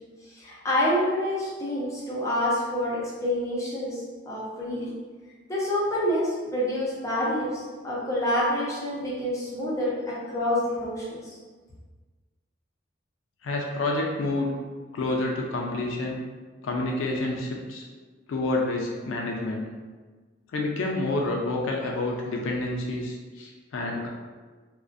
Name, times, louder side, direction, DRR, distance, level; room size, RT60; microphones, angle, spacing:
voice 1, 0.4-4.9 5.5-11.4, left 1 dB, 15° left, -7 dB, 0.6 m, -27 dB
voice 2, 13.4-14.5 14.9-16.2 16.6-17.9 18.3-19.6 20.5-24.1, left 2 dB, 90° left, 0 dB, 0.4 m, -28 dB
2.3 x 2.1 x 2.5 m, 1.4 s
head